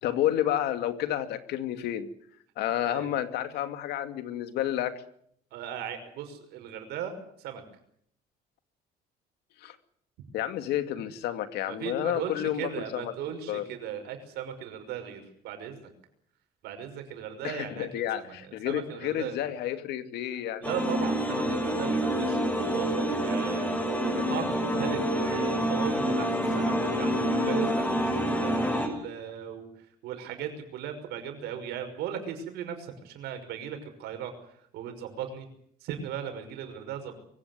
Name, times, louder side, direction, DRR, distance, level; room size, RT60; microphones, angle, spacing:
voice 1, 0.0-2.1 2.6-5.0 9.6-9.8 10.3-13.1 13.5-13.6 17.4-20.6, left 12 dB, 85° left, 9 dB, 2.5 m, -30 dB
voice 2, 2.8-3.1 5.5-7.6 11.6-15.9 16.6-19.4 20.6-23.7 24.0-35.5 35.8-37.1, right 9 dB, 90° right, 7 dB, 5.9 m, -38 dB
sound 1, 20.6-28.9, equal, 10° left, 7.0 m, -27 dB
23.5 x 17.0 x 9.6 m, 0.68 s
cardioid pair, 115°, 16 cm